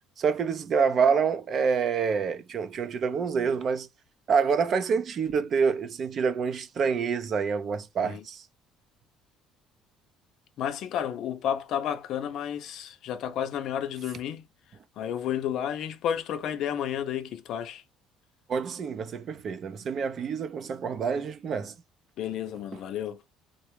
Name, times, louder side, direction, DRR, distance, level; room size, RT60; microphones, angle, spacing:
voice 1, 0.2-3.9 4.3-8.4 18.5-21.7, right 6 dB, 35° right, 0.5 m, -27 dB
voice 2, 10.6-14.5 15.0-17.8 22.2-23.2, left 9 dB, 55° left, 0.5 m, -31 dB
3.8 x 2.2 x 3.0 m
cardioid pair, 160°, 0 cm